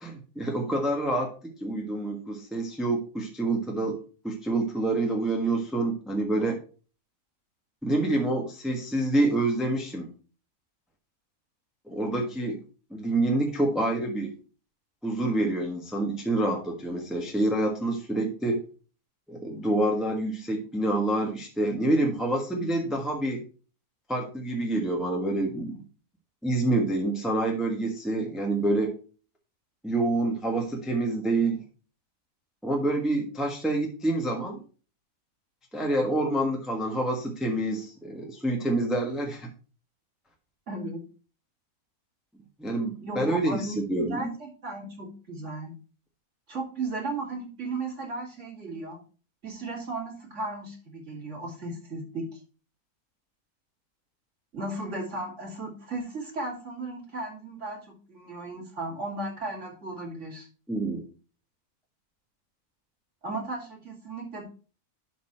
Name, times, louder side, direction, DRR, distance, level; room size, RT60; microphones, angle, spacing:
voice 1, 0.0-6.6 7.8-10.1 11.9-12.6 12.9-14.3 15.0-18.6 19.3-23.4 24.1-25.8 26.4-29.0 29.8-31.6 32.6-34.6 35.7-39.5 42.6-44.2 60.7-61.0, right 2 dB, ahead, 1 dB, 1.2 m, -27 dB
voice 2, 40.7-41.0 43.0-45.7 46.5-49.0 49.4-52.2 54.5-60.5 63.2-64.4, right 2 dB, 50° right, -2 dB, 3.1 m, -35 dB
10.5 x 4.3 x 4.3 m, 0.37 s
omnidirectional pair, 1.6 m